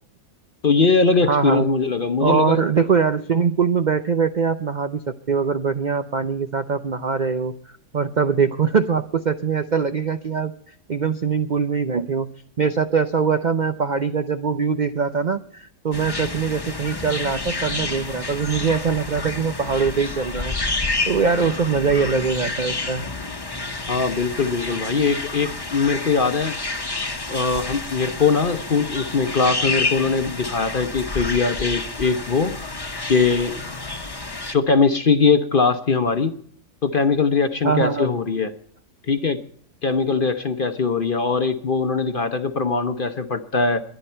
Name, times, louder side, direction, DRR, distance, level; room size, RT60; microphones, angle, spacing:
voice 1, 0.6-2.6 23.9-26.6 27.3-32.5 33.1-33.6 34.5-36.3 36.8-38.5 39.1-39.4 39.8-43.8, left 4 dB, 45° left, 8 dB, 0.7 m, -21 dB
voice 2, 1.2-1.7 2.2-7.5 7.9-10.5 10.9-12.3 12.6-20.6 21.1-23.1 37.6-38.1, right 5 dB, 75° right, 8 dB, 0.4 m, -22 dB
sound 1, 15.9-34.5, left 3 dB, 20° left, 0.9 m, -29 dB
22.0 x 10.0 x 4.4 m, 0.64 s
omnidirectional pair, 1.8 m